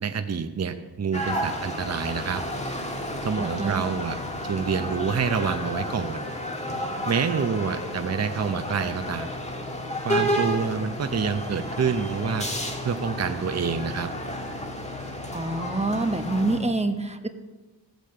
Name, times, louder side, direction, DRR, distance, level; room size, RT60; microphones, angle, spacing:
voice 1, 0.0-2.4 3.2-4.2 4.4-6.2 7.1-9.3 10.0-12.5 12.8-14.1, right 6 dB, 35° right, 8 dB, 0.7 m, -27 dB
sound 1, 1.1-16.6, equal, 15° left, 1.6 m, -31 dB
voice 2, 3.4-3.8 10.2-10.3 15.3-17.3, right 2 dB, 15° right, 6 dB, 1.1 m, -27 dB
15.0 x 5.2 x 7.5 m, 1.2 s
wide cardioid pair, 80°, 42 cm